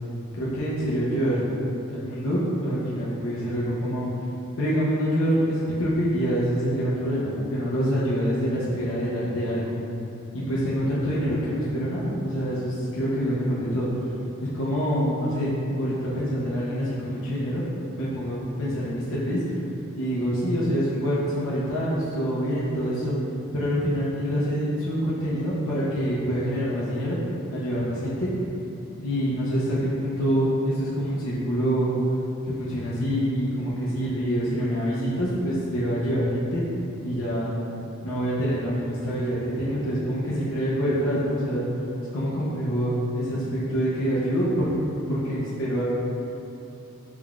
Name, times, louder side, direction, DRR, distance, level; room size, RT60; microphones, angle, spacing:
voice 1, 0.3-1.4 1.9-4.1 4.6-9.6 10.3-13.9 14.4-19.4 20.0-23.1 23.5-27.2 27.5-28.3 29.0-31.9 32.4-36.6 37.0-37.5 38.0-41.7 42.1-44.8 45.1-45.8, equal, 65° left, -9 dB, 0.6 m, -26 dB
3.6 x 3.4 x 2.3 m, 2.9 s
head